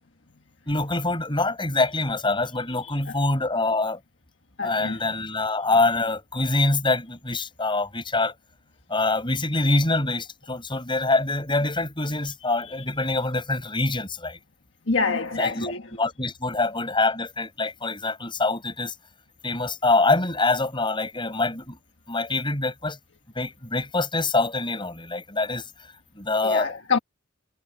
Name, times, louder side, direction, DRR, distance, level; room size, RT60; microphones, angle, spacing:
voice 1, 0.7-4.0 4.6-8.3 8.9-14.4 15.4-18.9 19.4-21.8 22.1-23.0 23.4-25.6 26.2-26.7, left 2 dB, 25° left, 7.9 m, -25 dB
voice 2, 2.8-3.1 4.6-5.1 12.6-12.7 14.9-15.9 26.4-27.0, left 4 dB, 65° left, 1.6 m, -27 dB
head